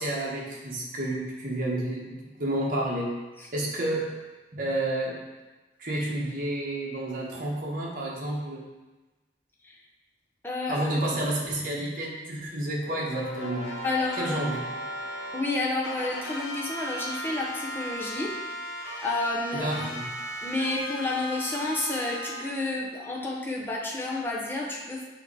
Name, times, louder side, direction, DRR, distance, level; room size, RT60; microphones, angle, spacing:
voice 1, 0.0-3.1 3.5-4.1 4.5-5.2 5.8-8.6 10.7-13.8 14.2-14.6 19.5-20.1, right 1 dB, 50° right, -4 dB, 1.3 m, -30 dB
voice 2, 10.4-10.9 13.8-14.4 15.3-18.4 19.0-19.9 20.4-25.0, left 2 dB, 10° left, -3 dB, 0.8 m, -30 dB
sound 1, 12.8-15.4 15.8-22.4, equal, 85° left, 0.9 m, -36 dB
6.9 x 3.0 x 4.7 m, 1.2 s
head